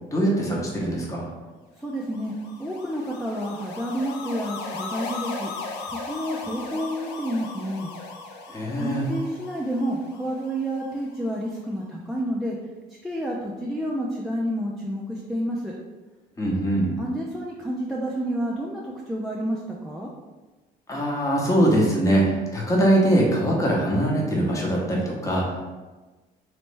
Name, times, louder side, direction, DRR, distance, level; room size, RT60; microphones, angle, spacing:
voice 1, 0.1-1.3 8.5-9.1 16.4-16.9 20.9-25.6, right 1 dB, 20° left, -2 dB, 0.9 m, -22 dB
voice 2, 1.8-2.3 2.6-5.5 5.9-7.9 8.8-12.6 13.0-15.7 17.0-20.1, equal, ahead, -3 dB, 0.4 m, -29 dB
sound 1, 1.9-11.2, left 4 dB, 90° left, 0.6 m, -37 dB
3.1 x 3.1 x 3.3 m, 1.2 s
cardioid pair, 110°, 17 cm